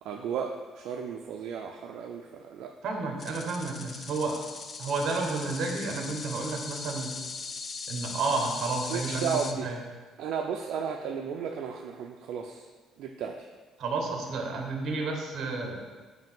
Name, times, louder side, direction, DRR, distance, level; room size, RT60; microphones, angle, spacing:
voice 1, 0.0-2.7 8.9-9.7 10.2-12.7 13.0-13.5, right 7 dB, 60° right, 2 dB, 0.4 m, -34 dB
voice 2, 2.8-4.4 4.8-7.2 7.9-9.8 13.8-15.8, right 3 dB, 45° right, 2 dB, 1.0 m, -31 dB
sound 1, 3.2-9.5, left 4 dB, 30° left, 0.3 m, -39 dB
7.7 x 2.7 x 5.4 m, 1.4 s
cardioid pair, 180°, 0 cm